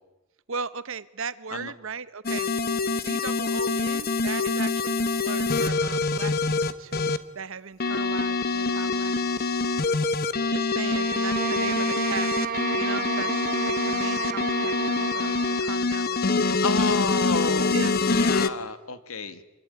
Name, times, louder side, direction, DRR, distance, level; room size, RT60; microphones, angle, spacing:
voice 1, 0.5-2.5 2.9-9.6 10.5-12.3 12.7-16.6 17.7-17.9, right 5 dB, 70° right, 16 dB, 1.1 m, -37 dB
sound 1, 2.2-7.2 7.8-18.5, left 3 dB, 45° left, 1.3 m, -25 dB
sound 2, 10.9-15.7, right 6 dB, 45° right, 0.9 m, -31 dB
voice 2, 16.6-19.4, left 4 dB, 85° left, 11 dB, 2.0 m, -31 dB
26.5 x 21.5 x 9.9 m, 1.1 s
head